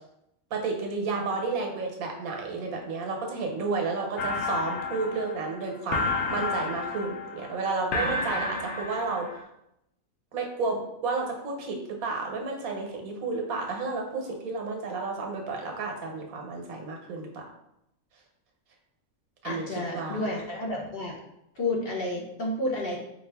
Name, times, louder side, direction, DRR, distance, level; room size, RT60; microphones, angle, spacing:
voice 1, 0.5-9.4 10.3-11.8 12.0-17.4 19.4-20.2, right 3 dB, 85° right, 2 dB, 1.2 m, -31 dB
sound 1, 4.2-9.4, left 3 dB, 75° left, 1.0 m, -31 dB
voice 2, 19.4-21.2 21.5-23.0, left 1 dB, 50° left, -3 dB, 0.8 m, -31 dB
4.4 x 2.4 x 3.3 m, 0.81 s
omnidirectional pair, 1.5 m